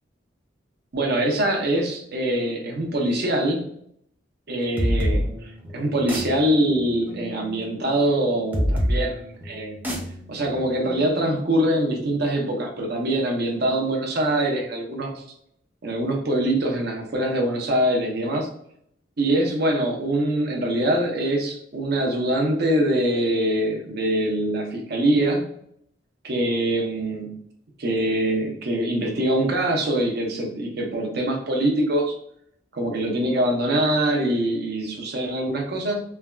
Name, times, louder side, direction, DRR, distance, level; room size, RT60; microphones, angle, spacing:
voice 1, 0.9-3.7 4.5-9.8 10.3-15.2 15.8-18.5 19.2-25.4 26.2-27.4 27.8-32.2 32.7-36.0, right 1 dB, 60° right, 1 dB, 0.6 m, -23 dB
sound 1, 4.8-12.1, equal, 10° right, 0.6 m, -28 dB
3.3 x 2.2 x 2.3 m, 0.70 s
head